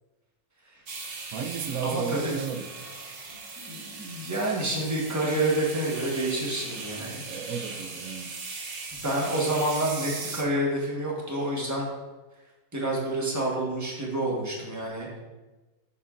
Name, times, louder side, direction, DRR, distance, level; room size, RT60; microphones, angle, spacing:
sound 1, 0.9-10.4, right 4 dB, 50° right, 0.9 m, -39 dB
voice 1, 1.3-2.7 7.3-8.3, right 7 dB, 85° right, 5 dB, 1.1 m, -33 dB
voice 2, 1.8-2.4 3.6-7.2 8.9-11.9 12.7-15.2, right 1 dB, 15° right, -3 dB, 1.3 m, -28 dB
7.6 x 6.3 x 2.5 m, 1.2 s
omnidirectional pair, 1.5 m